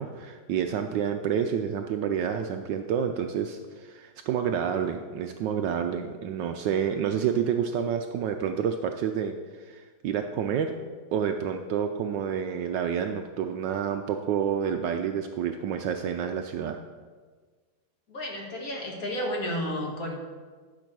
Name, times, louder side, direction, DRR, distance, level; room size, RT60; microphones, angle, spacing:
voice 1, 0.0-10.8 11.1-16.8, right 8 dB, 75° right, 6 dB, 1.1 m, -29 dB
voice 2, 18.1-20.1, equal, 45° left, -1 dB, 1.8 m, -32 dB
11.0 x 5.4 x 6.0 m, 1.5 s
omnidirectional pair, 2.2 m